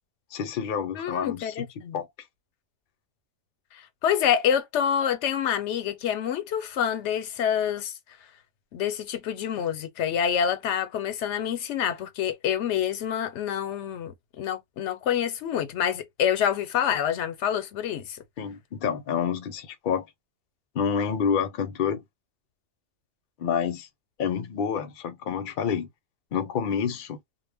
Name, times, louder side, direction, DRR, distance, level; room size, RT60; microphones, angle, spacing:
voice 1, 0.3-1.7 1.9-2.1 18.4-20.1 20.7-22.0 23.4-23.9 24.2-25.9 26.3-27.2, left 7 dB, 55° left, 0.7 m, -28 dB
voice 2, 0.9-2.0 3.7-8.0 8.7-18.2, left 9 dB, 85° left, 0.9 m, -27 dB
2.1 x 2.1 x 3.3 m
omnidirectional pair, 1.2 m